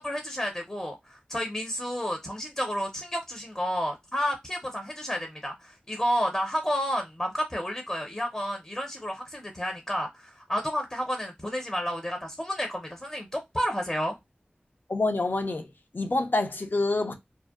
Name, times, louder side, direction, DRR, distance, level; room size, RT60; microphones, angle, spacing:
voice 1, 0.0-14.2, equal, 15° left, 0.6 m, -31 dB
voice 2, 14.9-15.7 15.9-17.1, left 2 dB, 60° left, 0.5 m, -26 dB
2.7 x 2.0 x 2.3 m
wide cardioid pair, 45°, 4 cm